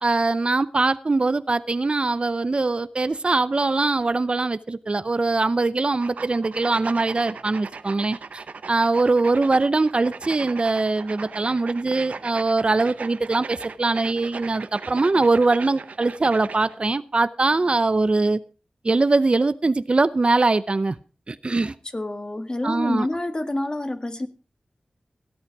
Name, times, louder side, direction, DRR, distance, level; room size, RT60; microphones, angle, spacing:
voice 1, 0.0-18.4 18.8-20.9 21.3-21.7 22.6-23.1, right 3 dB, 45° right, 0.6 m, -22 dB
sound 1, 6.0-16.8, right 4 dB, 85° right, 0.8 m, -38 dB
voice 2, 21.9-24.3, left 1 dB, 35° left, 1.7 m, -27 dB
17.0 x 8.7 x 4.6 m
cardioid pair, 50°, 2 cm